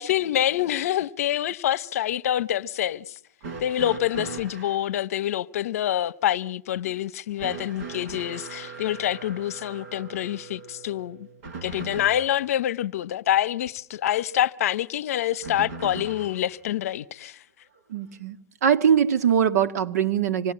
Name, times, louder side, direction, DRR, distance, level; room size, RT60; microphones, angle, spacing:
voice 1, 0.0-3.2 3.6-11.3 11.6-17.4, left 12 dB, 60° left, 1.0 m, -26 dB
sound 1, 3.4-4.9 7.4-12.5 15.4-16.5 17.7-17.8 18.9-19.0, right 4 dB, 50° right, 7.4 m, -39 dB
voice 2, 17.9-20.5, right 8 dB, 65° right, 1.9 m, -22 dB
26.0 x 20.0 x 8.7 m
hypercardioid pair, 160°, 9 cm